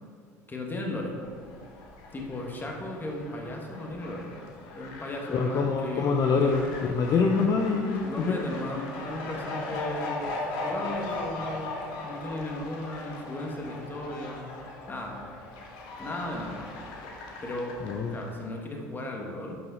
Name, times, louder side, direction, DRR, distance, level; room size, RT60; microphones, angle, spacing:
voice 1, 0.5-1.1 2.1-4.3 4.7-6.5 8.0-10.3 10.6-14.5 14.9-15.2 16.0-16.6 17.4-17.8 18.1-19.6, left 1 dB, 20° left, 0 dB, 1.8 m, -36 dB
Fowl, 1.1-18.5, left 2 dB, 65° left, 1.4 m, -39 dB
voice 2, 5.3-8.4 17.8-18.2, left 4 dB, 45° left, 2 dB, 0.7 m, -25 dB
11.0 x 5.5 x 4.1 m, 2.3 s
hypercardioid pair, 75°, 9 cm